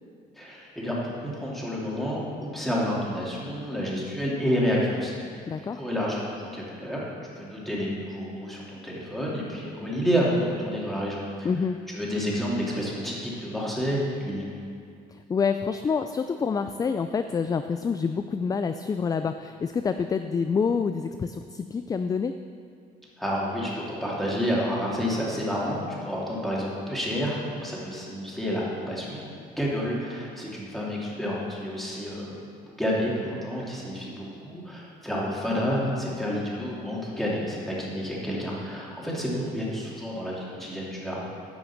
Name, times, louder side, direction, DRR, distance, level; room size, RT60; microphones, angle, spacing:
voice 1, 0.4-5.1 5.7-7.0 7.4-11.5 11.9-14.4 23.2-32.4 32.8-41.2, equal, ahead, -5 dB, 2.7 m, -29 dB
voice 2, 5.5-5.8 11.4-11.8 15.1-22.4, left 5 dB, 20° left, 9 dB, 0.3 m, -27 dB
11.0 x 5.9 x 7.2 m, 2.3 s
cardioid pair, 110°, 17 cm